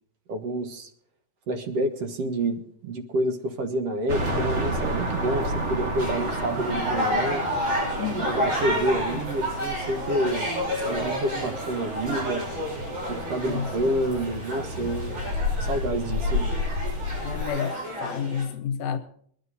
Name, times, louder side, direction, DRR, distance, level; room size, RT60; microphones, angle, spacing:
voice 1, 0.3-0.9 1.5-7.4 8.1-10.5 10.8-12.4 13.1-15.2 15.6-16.5, right 1 dB, 60° right, 2.3 m, -28 dB
sound 1, 4.1-17.4, equal, 35° right, 1.2 m, -31 dB
sound 2, 6.0-18.4, equal, 80° right, 7.9 m, -31 dB
voice 2, 8.0-8.5 13.5-13.7 17.2-19.0, left 7 dB, 75° left, 2.3 m, -30 dB
20.0 x 12.0 x 4.1 m
omnidirectional pair, 3.4 m